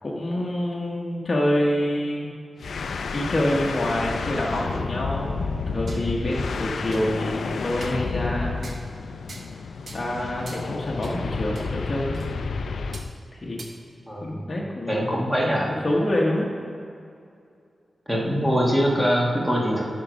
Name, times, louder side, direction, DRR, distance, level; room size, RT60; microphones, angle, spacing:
voice 1, 0.0-2.3 2.7-8.6 9.9-12.2 13.4-13.6 14.2-15.3 15.6-16.5, left 1 dB, 35° left, -4 dB, 1.1 m, -26 dB
sound 1, 2.6-13.1, left 4 dB, 80° left, 0.4 m, -31 dB
sound 2, 5.9-6.1 6.5-6.6 6.9-7.0 7.8-8.0 8.6-8.9 9.3-9.6 9.9-10.1 10.5-10.7 11.0-11.2 11.6-11.7 12.1-12.3 12.9-13.1 13.6-13.7, right 3 dB, 60° right, 1.1 m, -42 dB
voice 2, 14.1-14.4 14.9-15.7 18.1-19.9, equal, 5° right, -4 dB, 1.5 m, -23 dB
11.0 x 4.7 x 5.2 m, 2.4 s
wide cardioid pair, 115°, 0 cm